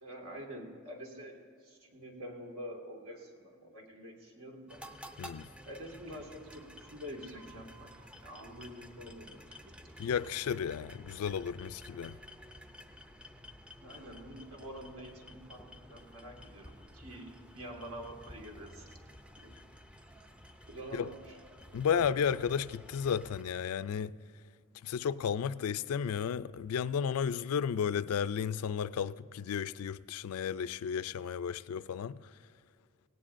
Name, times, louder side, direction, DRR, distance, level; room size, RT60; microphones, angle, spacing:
voice 1, 0.0-4.8 5.7-7.9 8.2-10.1 13.8-18.9 19.4-19.6 20.7-21.3, equal, 80° right, 2.0 m, -47 dB
sound 1, 4.7-23.4, equal, 5° right, 0.4 m, -52 dB
voice 2, 5.2-5.5 10.0-12.2 20.9-21.1 21.7-24.2 24.8-32.2, left 7 dB, 80° left, 0.3 m, -33 dB
17.5 x 17.5 x 2.6 m
head